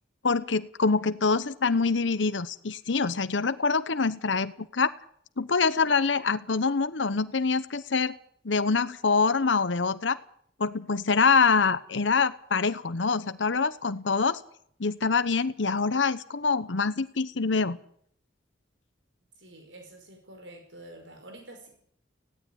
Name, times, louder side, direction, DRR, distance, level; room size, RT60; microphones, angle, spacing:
voice 1, 0.2-4.9 5.4-8.1 8.4-10.2 10.6-14.4 14.8-17.8, left 4 dB, 85° left, 13 dB, 0.9 m, -25 dB
voice 2, 19.4-21.7, right 1 dB, 85° right, 4 dB, 5.1 m, -47 dB
16.5 x 16.5 x 9.9 m, 0.66 s
head